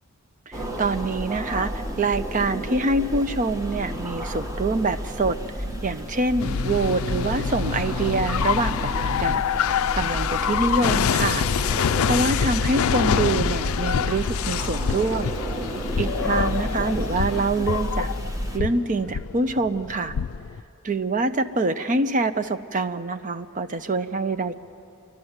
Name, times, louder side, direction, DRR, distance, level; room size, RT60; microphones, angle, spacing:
sound 1, 0.5-18.6, equal, 15° right, 1.5 m, -31 dB
voice 1, 0.5-5.3 5.8-9.4 10.0-11.5 12.1-15.3 16.0-18.1 18.5-20.1 20.8-24.6, right 3 dB, 40° right, 10 dB, 0.6 m, -25 dB
sound 2, 6.4-20.6, left 8 dB, 75° left, 0.4 m, -26 dB
28.5 x 12.0 x 8.0 m, 2.7 s
head